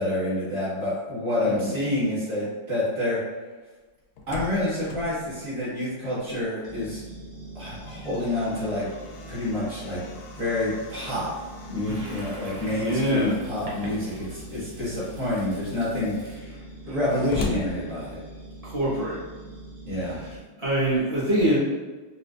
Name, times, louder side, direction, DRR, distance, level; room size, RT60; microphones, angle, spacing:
voice 1, 0.0-3.2 4.3-7.0 7.6-8.9 9.3-11.3 11.7-16.6 16.9-18.2 19.9-20.2, left 1 dB, 40° right, -11 dB, 2.0 m, -28 dB
voice 2, 1.4-1.7 12.7-13.4 18.6-19.2 20.1-20.3 20.6-21.6, right 1 dB, 20° right, -9 dB, 1.0 m, -24 dB
Slam, 3.9-6.7 7.0-7.1 7.6-13.2 14.1-14.6 15.2-15.3 15.5-18.6, left 4 dB, 85° left, 1.5 m, -39 dB
sound 1, 6.6-20.4, right 2 dB, 70° right, 2.3 m, -43 dB
Toilet flush, 11.9-18.4, right 1 dB, 90° right, 1.8 m, -44 dB
5.2 x 2.4 x 2.5 m, 1.3 s
omnidirectional pair, 2.3 m